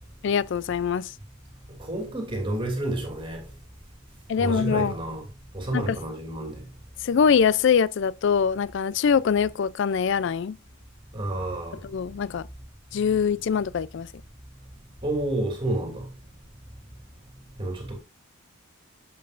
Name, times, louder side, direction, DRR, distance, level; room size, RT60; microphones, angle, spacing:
voice 1, 0.2-1.1 4.3-4.9 5.7-6.0 7.0-10.6 11.8-12.5 12.9-14.1, left 6 dB, 55° left, 0.3 m, -23 dB
voice 2, 1.9-3.4 4.4-5.2 5.5-6.6 11.1-11.8 15.0-16.1 17.6-18.0, right 1 dB, 25° right, 2.7 m, -29 dB
11.0 x 7.6 x 2.5 m
head